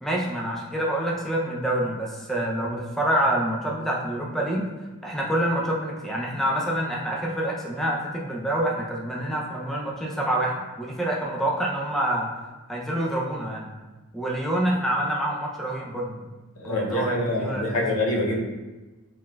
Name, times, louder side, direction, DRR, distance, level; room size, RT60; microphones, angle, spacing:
voice 1, 0.0-4.6 5.0-12.3 12.7-13.7 14.1-16.2 16.6-17.9, right 1 dB, ahead, -3 dB, 0.3 m, -27 dB
voice 2, 16.6-18.4, left 1 dB, 85° left, -2 dB, 0.7 m, -25 dB
4.0 x 2.2 x 2.2 m, 1.2 s
head